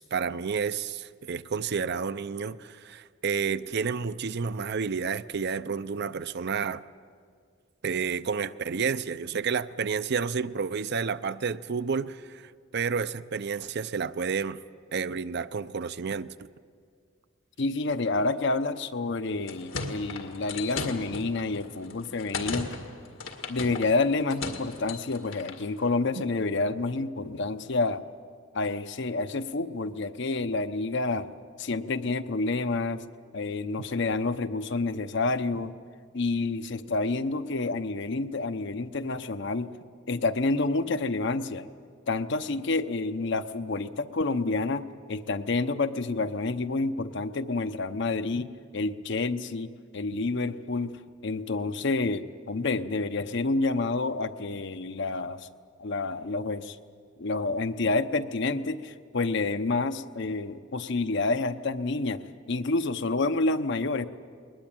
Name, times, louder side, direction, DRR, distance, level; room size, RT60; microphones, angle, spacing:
voice 1, 0.0-6.8 7.8-14.6 14.9-16.3, right 5 dB, 55° right, 0.6 m, -30 dB
voice 2, 17.6-22.7 23.5-28.0 28.5-31.3 31.6-33.0 33.3-35.7 36.1-39.7 40.1-41.7 42.1-48.5 48.7-50.9 51.2-55.5 55.8-56.8 57.2-64.1, left 3 dB, 65° left, 0.8 m, -29 dB
sound 1, 19.2-25.6, left 4 dB, 85° left, 2.1 m, -37 dB
21.0 x 20.5 x 9.0 m
head